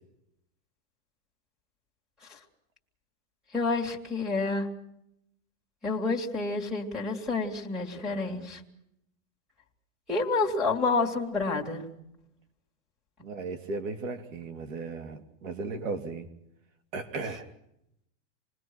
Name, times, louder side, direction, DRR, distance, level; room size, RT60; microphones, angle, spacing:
voice 1, 3.5-4.7 5.8-8.6 10.1-11.8, left 3 dB, ahead, 2.5 m, -29 dB
voice 2, 7.9-8.5 13.2-16.3 16.9-17.5, right 3 dB, 80° right, 3.3 m, -36 dB
28.0 x 20.0 x 6.2 m
supercardioid pair, 170°, 38 cm